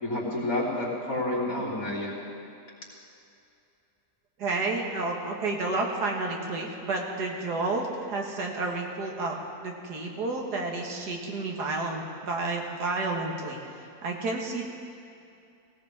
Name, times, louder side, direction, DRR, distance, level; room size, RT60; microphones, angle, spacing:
voice 1, 0.0-2.1, left 1 dB, 55° left, -7 dB, 3.7 m, -29 dB
voice 2, 4.4-9.4 9.6-13.6 14.0-14.7, right 3 dB, 85° right, 0 dB, 2.2 m, -30 dB
18.0 x 17.5 x 3.6 m, 2.6 s
omnidirectional pair, 1.7 m